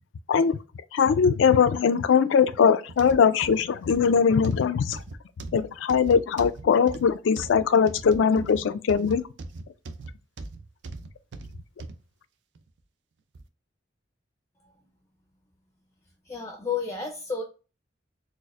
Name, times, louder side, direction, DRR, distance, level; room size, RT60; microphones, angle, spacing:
voice 1, 0.9-5.0 5.5-9.2, left 6 dB, 85° left, 0.3 m, -21 dB
sound 1, 2.9-12.0 12.5-12.7 13.3-13.4, right 3 dB, 70° right, 0.4 m, -40 dB
voice 2, 16.2-17.4, left 5 dB, 15° left, 0.4 m, -31 dB
4.2 x 2.5 x 2.4 m
head